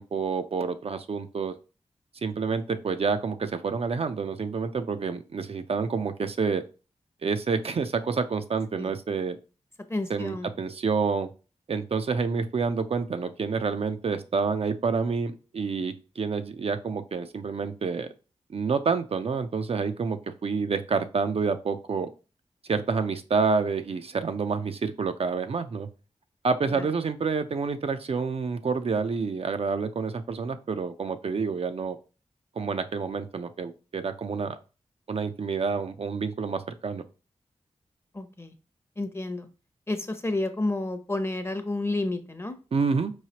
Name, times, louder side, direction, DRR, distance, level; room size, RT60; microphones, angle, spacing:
voice 1, 0.0-1.5 2.1-6.6 7.2-9.4 10.1-11.3 11.7-18.1 18.5-22.1 22.7-25.9 26.4-32.0 32.6-34.6 35.1-37.0 42.7-43.1, right 5 dB, 55° right, 8 dB, 0.4 m, -28 dB
voice 2, 9.9-10.5 26.7-26.9 38.1-38.5 39.0-39.5 39.9-42.6, left 2 dB, 20° left, 9 dB, 0.6 m, -30 dB
4.7 x 3.1 x 2.8 m, 0.34 s
cardioid pair, 50°, 12 cm